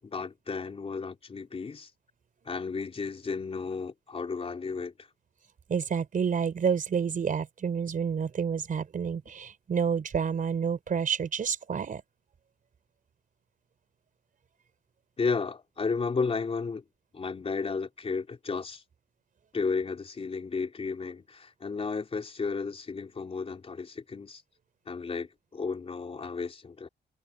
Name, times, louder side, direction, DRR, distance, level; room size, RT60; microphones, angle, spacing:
voice 1, 0.0-1.9 2.5-4.9 15.2-16.8 17.1-18.8 19.5-24.4 24.9-26.9, left 4 dB, 30° left, 3.9 m, -33 dB
voice 2, 5.7-12.0, right 6 dB, 45° right, 4.8 m, -29 dB
wide cardioid pair, 165°, 20 cm